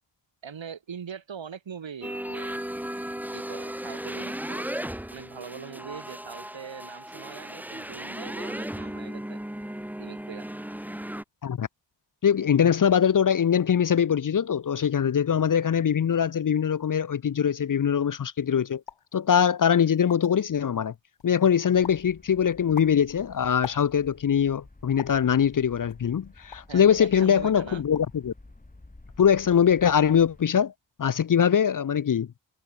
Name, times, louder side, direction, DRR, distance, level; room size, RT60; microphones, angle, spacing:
voice 1, 0.4-2.6 3.3-4.7 5.1-9.4 10.0-10.5 26.7-27.8, right 7 dB, 80° right, 4.6 m, -41 dB
sound 1, 2.0-11.2, right 1 dB, 5° right, 1.1 m, -36 dB
voice 2, 12.2-18.8 19.1-20.9 21.2-28.3 29.2-30.7 31.0-32.3, left 8 dB, 45° left, 0.6 m, -22 dB
sound 2, 18.8-19.1 19.7-19.8 19.9-20.5 20.9-21.4 21.8-22.1 22.5-24.2 25.0-25.3 25.9-26.8 27.2-27.4 27.7-28.2 28.5-29.0, left 7 dB, 70° left, 4.0 m, -43 dB
sound 3, 21.7-30.5, left 2 dB, 20° left, 2.9 m, -51 dB
wide cardioid pair, 110°, 45 cm